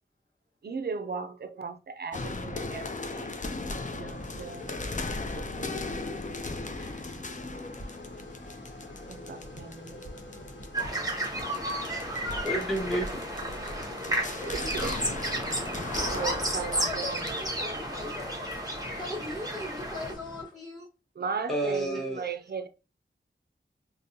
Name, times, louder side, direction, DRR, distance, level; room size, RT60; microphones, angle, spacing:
voice 1, 0.6-3.4 3.9-5.7 6.7-6.9 9.1-10.0 14.0-18.1 21.2-22.7, right 5 dB, 55° right, 0.4 m, -38 dB
sound 1, 2.1-17.9, left 3 dB, 40° left, 0.4 m, -38 dB
sound 2, 4.1-20.4, left 1 dB, 65° left, 1.1 m, -47 dB
sound 3, 10.7-20.1, right 1 dB, 20° right, 0.9 m, -32 dB
voice 2, 11.8-13.2 14.6-14.7 21.5-22.2, right 1 dB, ahead, 1.2 m, -31 dB
voice 3, 16.7-18.6 18.9-20.9, left 2 dB, 20° left, 1.3 m, -39 dB
5.1 x 2.1 x 2.7 m
wide cardioid pair, 60°, 20 cm